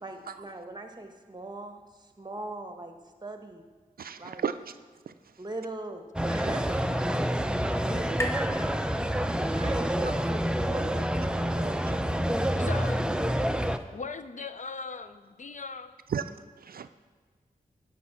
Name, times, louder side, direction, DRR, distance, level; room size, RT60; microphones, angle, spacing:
voice 1, 0.0-1.8 2.2-2.9 3.2-3.6 4.2-4.4 5.4-6.7 7.8-8.3 9.5-13.2, right 2 dB, 25° right, 5 dB, 1.2 m, -40 dB
voice 2, 4.0-4.7 5.1-5.2 16.1-16.2 16.6-16.9, right 7 dB, 75° right, 11 dB, 0.4 m, -33 dB
sound 1, 5.8-9.6, left 1 dB, 20° left, 1.1 m, -41 dB
sound 2, 6.2-13.8, equal, 5° right, 0.5 m, -28 dB
voice 3, 12.6-13.1 13.9-15.9, left 4 dB, 55° left, 11 dB, 0.5 m, -39 dB
10.0 x 5.3 x 7.0 m, 1.5 s
wide cardioid pair, 65°, 15 cm